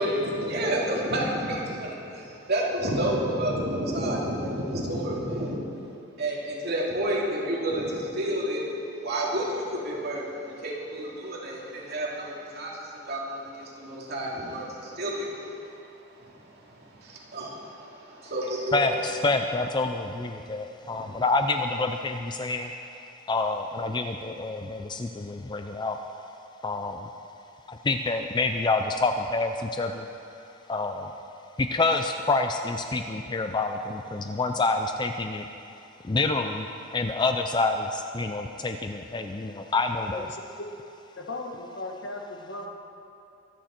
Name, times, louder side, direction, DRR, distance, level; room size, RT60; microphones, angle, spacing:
voice 1, 0.0-5.6 6.2-8.7 9.0-12.7 13.1-15.3 16.2-16.3 16.6-18.8 20.9-21.1, right 1 dB, 55° right, -4 dB, 2.6 m, -30 dB
voice 2, 18.7-22.7 23.3-26.0 26.6-27.1 27.7-30.1 30.7-31.1 31.6-35.5 36.0-36.7 36.9-40.3, left 3 dB, 25° left, 6 dB, 0.4 m, -27 dB
voice 3, 40.1-40.7 41.2-42.7, left 2 dB, 65° left, 1 dB, 1.6 m, -37 dB
23.5 x 9.2 x 4.4 m, 2.7 s
head